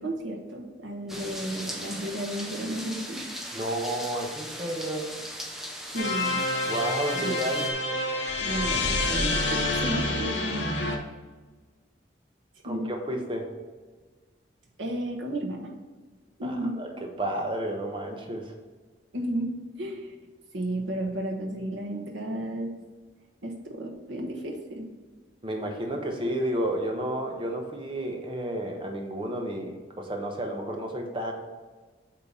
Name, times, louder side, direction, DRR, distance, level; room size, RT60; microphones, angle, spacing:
voice 1, 0.0-3.2 5.9-6.4 7.2-7.4 8.4-10.7 12.6-12.9 14.8-15.7 16.4-16.7 19.1-20.1 20.5-22.8 23.4-24.8, right 1 dB, 85° right, 0 dB, 1.3 m, -33 dB
sound 1, 1.1-7.7, equal, ahead, 0.6 m, -38 dB
voice 2, 3.5-5.1 6.7-7.7 12.6-13.5 16.4-16.9 17.2-18.5 25.4-31.3, right 1 dB, 25° right, 2 dB, 0.8 m, -31 dB
sound 2, 6.0-11.0, left 2 dB, 65° left, 0.9 m, -28 dB
8.3 x 2.9 x 5.3 m, 1.3 s
head